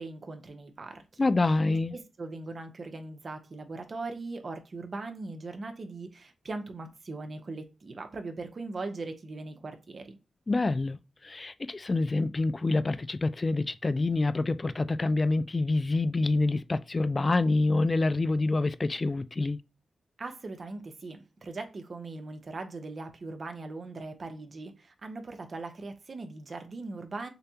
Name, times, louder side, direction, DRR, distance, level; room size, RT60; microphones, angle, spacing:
voice 1, 0.0-1.3 1.9-10.2 20.2-27.3, right 3 dB, 55° right, 0.9 m, -40 dB
voice 2, 1.2-1.9 10.5-19.6, left 2 dB, 35° left, 0.3 m, -27 dB
6.6 x 2.3 x 2.8 m
cardioid pair, 65°, 0 cm